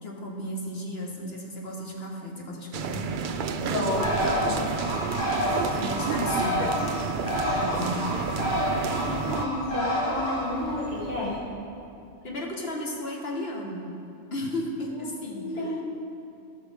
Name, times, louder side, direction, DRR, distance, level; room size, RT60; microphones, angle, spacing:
voice 1, 0.0-3.1 5.8-6.6 7.5-8.0 12.2-13.8 14.3-15.8, left 1 dB, 50° left, -1 dB, 1.5 m, -34 dB
sound 1, 2.7-9.5, right 6 dB, 65° right, 0.5 m, -30 dB
voice 2, 3.7-4.9 9.0-11.4 15.0-15.1 15.3-15.8, left 2 dB, 25° left, -8 dB, 2.6 m, -31 dB
Bird, 3.9-11.4, left 1 dB, 80° left, 2.3 m, -29 dB
17.0 x 6.1 x 3.6 m, 2.6 s
omnidirectional pair, 1.3 m